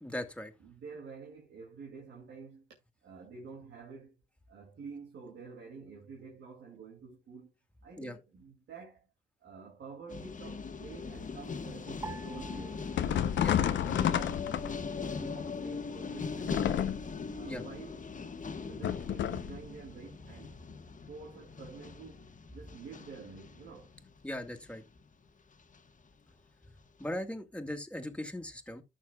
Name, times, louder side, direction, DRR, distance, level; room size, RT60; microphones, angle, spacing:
voice 1, 0.0-0.5 8.0-8.2 13.4-13.6 17.4-17.6 24.2-24.8 27.0-28.8, left 1 dB, 5° left, 2.1 m, -39 dB
voice 2, 0.6-2.7 3.0-4.2 4.5-7.5 7.8-9.1 9.4-12.9 13.8-14.6 15.0-17.0 17.3-18.0 18.6-20.6 21.1-23.9, right 5 dB, 80° right, 2.5 m, -49 dB
sound 1, 10.1-25.0 25.7-26.1, left 5 dB, 45° left, 1.4 m, -40 dB
sound 2, 12.0-14.5 14.8-15.7 16.3-16.7, right 3 dB, 20° right, 4.5 m, -49 dB
sound 3, 13.0-15.1 16.4-17.2 18.8-19.6, left 10 dB, 90° left, 0.8 m, -30 dB
14.0 x 6.5 x 2.3 m
cardioid pair, 75°, 18 cm